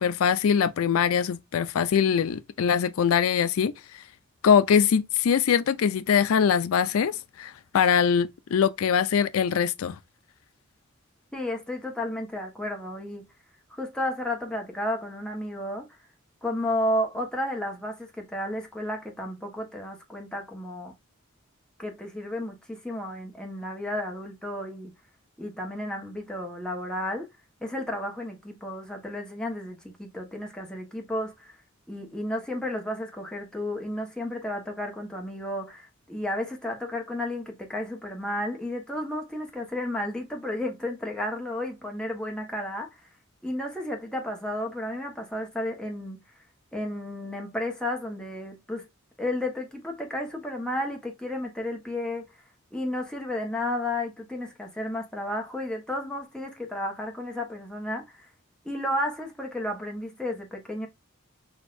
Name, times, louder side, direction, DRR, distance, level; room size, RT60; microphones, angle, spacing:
voice 1, 0.0-3.7 4.4-10.0, left 7 dB, 90° left, 0.4 m, -23 dB
voice 2, 11.3-13.2 13.7-15.9 16.4-20.9 21.8-24.9 25.4-27.3 27.6-31.5 31.9-43.0 43.4-46.2 46.7-48.9 49.2-52.2 52.7-58.3 58.6-60.9, left 1 dB, 5° left, 1.2 m, -32 dB
6.4 x 2.6 x 2.5 m
head